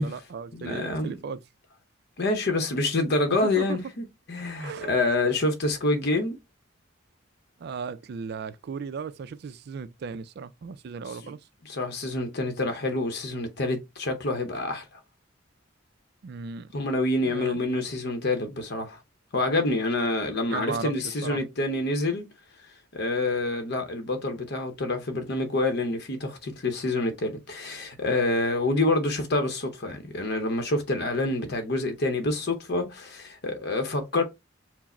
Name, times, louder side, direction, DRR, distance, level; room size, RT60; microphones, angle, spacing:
voice 1, 0.0-1.4 3.3-3.8 4.6-4.9 7.6-11.4 16.2-16.7 17.2-17.6 20.5-21.4, right 5 dB, 55° right, 0.3 m, -36 dB
voice 2, 0.5-1.2 2.2-6.4 11.2-11.3 11.6-15.0 16.7-19.0 19.3-22.2 22.9-34.2, left 2 dB, 55° left, 0.7 m, -27 dB
4.6 x 2.0 x 4.2 m
head